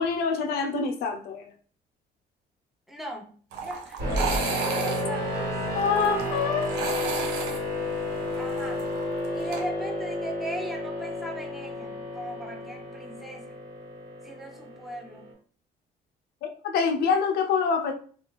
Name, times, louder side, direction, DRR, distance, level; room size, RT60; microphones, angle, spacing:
voice 1, 0.0-1.4 5.7-6.7 16.6-17.9, left 5 dB, 70° left, 5 dB, 0.5 m, -25 dB
voice 2, 2.9-5.6 8.4-8.9 9.3-13.6 14.2-15.3, equal, ahead, 1 dB, 0.6 m, -39 dB
sound 1, 3.5-9.6, right 5 dB, 85° right, 0.6 m, -34 dB
sound 2, 4.0-15.3, left 1 dB, 60° right, 1.3 m, -31 dB
2.4 x 2.4 x 3.0 m, 0.43 s
cardioid pair, 110°, 17 cm